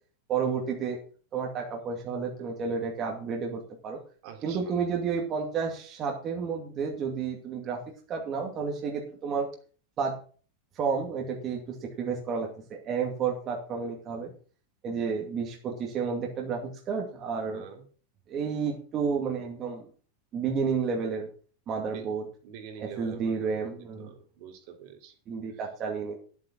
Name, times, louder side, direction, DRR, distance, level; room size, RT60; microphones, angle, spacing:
voice 1, 0.3-1.0 1.3-4.0 4.4-7.8 8.1-9.5 10.0-10.2 10.8-14.3 14.8-17.6 18.3-19.8 20.3-21.3 21.7-22.2 22.8-24.1 25.3-26.2, right 5 dB, 25° right, 0 dB, 2.3 m, -31 dB
voice 2, 4.2-4.8 17.5-17.8 21.9-22.0 22.4-23.7 24.0-25.1, right 7 dB, 45° right, 4 dB, 2.9 m, -45 dB
10.5 x 8.4 x 6.2 m, 0.40 s
supercardioid pair, 160°, 0 cm